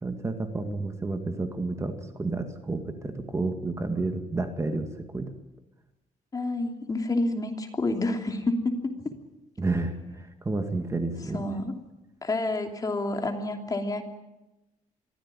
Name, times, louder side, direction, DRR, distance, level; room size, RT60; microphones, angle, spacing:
voice 1, 0.0-5.3 9.6-11.4, right 3 dB, 20° right, 6 dB, 2.0 m, -30 dB
voice 2, 6.3-8.9 11.3-11.7 12.2-14.0, left 2 dB, 25° left, 4 dB, 3.0 m, -28 dB
23.5 x 15.5 x 9.9 m, 0.99 s
cardioid pair, 130°, 14 cm